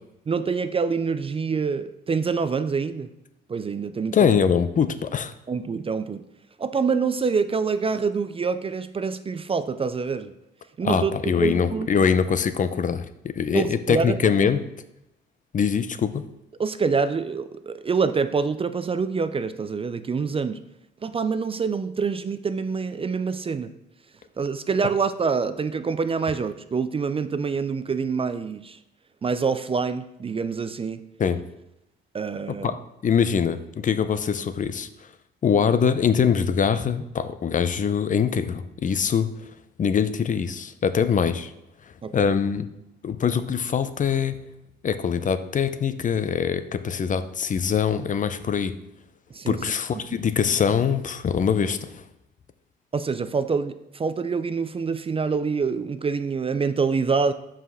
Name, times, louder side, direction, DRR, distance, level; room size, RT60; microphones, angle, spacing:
voice 1, 0.3-3.1 3.5-4.3 5.5-6.3 6.6-10.3 10.8-11.1 11.4-12.1 13.5-14.5 16.6-20.6 21.0-23.7 24.4-28.8 29.2-31.0 32.1-32.7 42.0-42.3 49.3-49.6 52.9-57.3, right 5 dB, 30° right, 12 dB, 0.4 m, -26 dB
voice 2, 4.1-5.3 10.8-14.7 15.5-16.3 31.2-31.4 32.5-32.8 33.0-34.9 35.4-39.3 39.8-41.5 42.1-42.7 43.0-44.4 44.8-48.7 49.5-51.9, left 7 dB, 40° left, 12 dB, 0.6 m, -23 dB
5.6 x 5.0 x 6.1 m, 0.87 s
cardioid pair, 90°, 20 cm